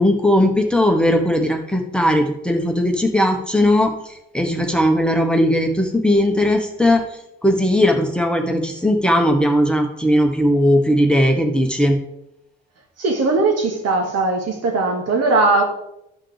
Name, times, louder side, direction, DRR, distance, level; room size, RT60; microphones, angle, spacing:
voice 1, 0.0-7.0 7.4-12.0, left 1 dB, 5° left, 3 dB, 1.3 m, -18 dB
voice 2, 13.0-15.6, right 3 dB, 55° right, 2 dB, 2.1 m, -19 dB
12.5 x 5.7 x 3.4 m, 0.81 s
hypercardioid pair, 55°, 29 cm